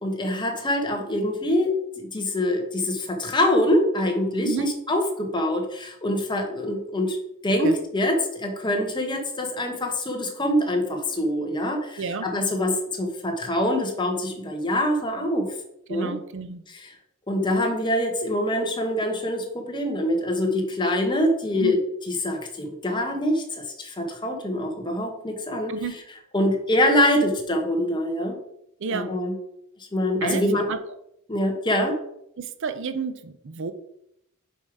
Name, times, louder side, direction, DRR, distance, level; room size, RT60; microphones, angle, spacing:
voice 1, 0.0-7.2 7.4-15.5 15.9-16.1 16.7-16.9 17.3-21.8 22.1-25.7 26.3-28.3 28.9-29.3 29.9-30.7 31.3-31.9, left 1 dB, 20° left, 3 dB, 1.2 m, -24 dB
voice 2, 12.0-12.3 15.9-16.6 21.5-21.8 25.7-26.0 28.8-29.1 30.2-30.8 32.4-33.7, right 5 dB, 60° right, 10 dB, 0.6 m, -31 dB
5.4 x 4.9 x 4.8 m, 0.77 s
head